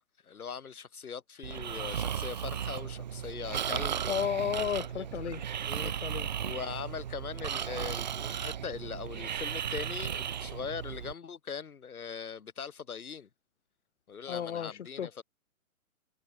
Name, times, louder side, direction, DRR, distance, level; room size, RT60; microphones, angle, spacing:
voice 1, 0.0-4.1 5.0-5.3 5.7-5.9 6.4-13.3 14.1-15.2, left 6 dB, 85° left, 7.8 m, -41 dB
Breathing, 1.4-11.1, right 9 dB, 30° right, 0.8 m, -35 dB
voice 2, 4.1-5.4 5.8-6.3 14.3-15.1, left 9 dB, 55° left, 5.8 m, -33 dB
hypercardioid pair, 170°, 42 cm